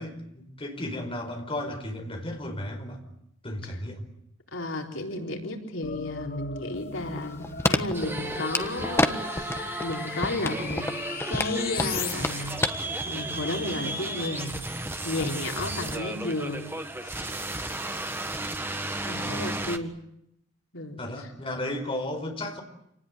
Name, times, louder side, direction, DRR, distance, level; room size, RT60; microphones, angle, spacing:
voice 1, 0.0-3.0 3.4-4.1 19.1-19.4 21.0-22.6, left 1 dB, 30° left, 3 dB, 4.9 m, -34 dB
voice 2, 4.5-10.9 11.3-12.6 13.1-14.6 15.0-16.7 17.0-17.2 19.1-20.0 20.7-21.0, left 2 dB, 85° left, 2 dB, 4.1 m, -33 dB
sound 1, 5.8-12.1, left 7 dB, 50° left, 1.1 m, -38 dB
sound 2, 6.7-9.1 9.4-9.9 10.2-12.7 13.0-13.1, left 2 dB, 15° left, 1.4 m, -27 dB
sound 3, 7.9-19.8, right 2 dB, 10° right, 1.7 m, -34 dB
28.0 x 19.5 x 9.5 m, 0.77 s
head